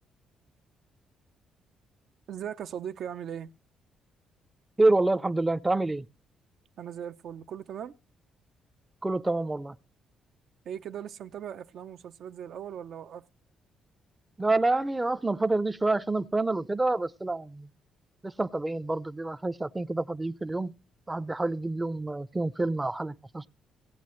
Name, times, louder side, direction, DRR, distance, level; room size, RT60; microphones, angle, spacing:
voice 1, 2.3-3.5 6.8-7.9 10.6-13.3, right 9 dB, 70° right, 0.6 m, -39 dB
voice 2, 4.8-6.1 9.0-9.7 14.4-17.7 18.2-20.7 21.1-23.5, right 2 dB, 15° right, 0.5 m, -27 dB
17.5 x 8.5 x 3.1 m
cardioid pair, 90°, 0 cm